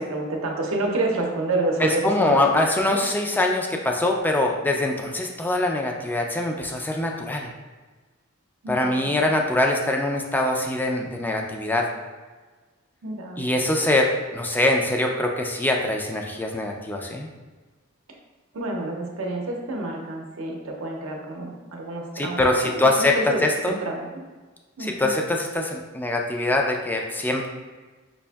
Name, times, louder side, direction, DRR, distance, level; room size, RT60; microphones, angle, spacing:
voice 1, 0.1-2.4 2.9-3.0 8.6-9.3 13.0-13.5 18.5-24.2 24.8-25.1, right 2 dB, 85° right, 0 dB, 0.6 m, -29 dB
voice 2, 1.8-7.5 8.7-11.9 13.4-17.3 22.2-23.1 23.4-23.8 24.8-27.5, left 2 dB, 10° left, 1 dB, 0.3 m, -23 dB
5.2 x 2.5 x 2.3 m, 1.3 s
head